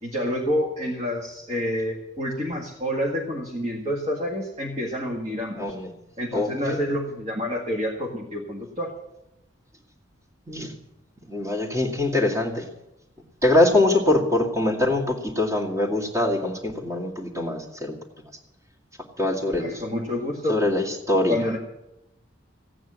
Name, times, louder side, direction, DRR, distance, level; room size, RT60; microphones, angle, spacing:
voice 1, 0.0-5.6 6.2-8.9 19.6-20.6 21.3-21.6, equal, 35° right, -1 dB, 1.9 m, -28 dB
voice 2, 5.6-5.9 6.3-6.8 10.5-10.7 11.3-12.6 13.4-18.0 19.2-19.7 20.5-21.4, left 2 dB, 15° right, 0 dB, 2.2 m, -23 dB
16.0 x 9.2 x 7.5 m, 0.92 s
head